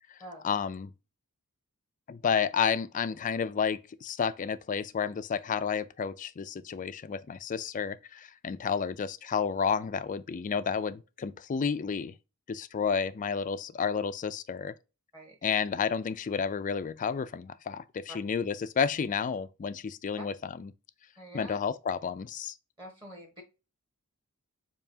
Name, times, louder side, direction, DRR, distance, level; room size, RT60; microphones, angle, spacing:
voice 1, 0.4-0.9 2.1-12.1 12.5-14.7 15.4-20.7 21.3-22.5, left 6 dB, 35° left, 0.3 m, -31 dB
voice 2, 15.1-15.5 18.1-18.2 20.2-20.3 21.2-21.6 22.8-23.4, equal, 20° right, 1.3 m, -46 dB
6.9 x 2.8 x 2.7 m
head